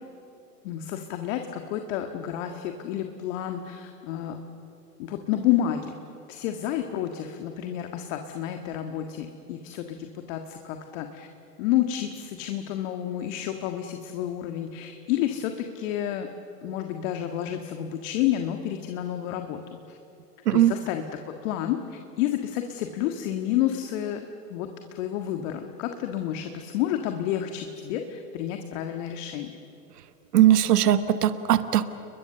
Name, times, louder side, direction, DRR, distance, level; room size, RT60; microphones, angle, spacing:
voice 1, 0.6-4.4 5.0-5.9 6.3-11.3 11.6-16.3 16.6-19.6 19.9-20.0 20.5-29.6, left 11 dB, 50° left, 5 dB, 1.8 m, -30 dB
voice 2, 30.3-31.9, right 11 dB, 70° right, 13 dB, 1.3 m, -19 dB
30.0 x 22.0 x 6.9 m, 2.9 s
hypercardioid pair, 105°, 48 cm